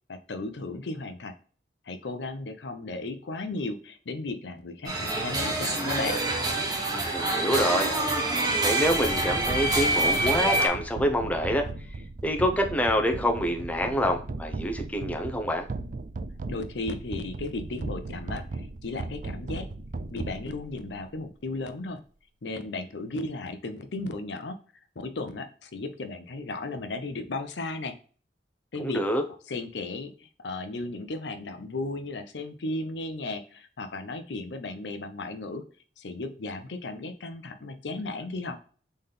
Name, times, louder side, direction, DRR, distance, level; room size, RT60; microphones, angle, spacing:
voice 1, 0.1-1.3 1.8-6.2 16.5-19.7 20.1-22.0 22.4-24.6 25.0-27.9 28.7-29.0 29.5-35.6 36.0-38.6, left 2 dB, 80° left, 8 dB, 0.6 m, -35 dB
sound 1, 4.8-10.7, right 2 dB, 25° right, 1.2 m, -26 dB
voice 2, 7.1-7.9 8.6-11.7 12.2-15.6 28.8-29.2, equal, 10° left, 3 dB, 0.7 m, -26 dB
sound 2, 8.9-21.0, right 3 dB, 45° right, 0.4 m, -37 dB
4.0 x 3.9 x 3.3 m, 0.41 s
head